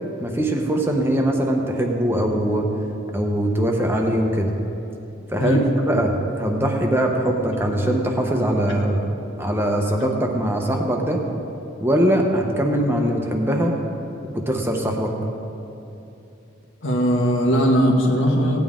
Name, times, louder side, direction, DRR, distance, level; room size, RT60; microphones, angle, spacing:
voice 1, 0.2-2.7 3.1-4.5 5.3-5.6 5.9-9.0 9.4-11.2 11.8-13.7 14.3-15.1, right 1 dB, 10° right, 1 dB, 0.9 m, -21 dB
voice 2, 16.8-18.6, equal, 85° left, 0 dB, 1.6 m, -19 dB
17.0 x 9.4 x 3.7 m, 2.8 s
head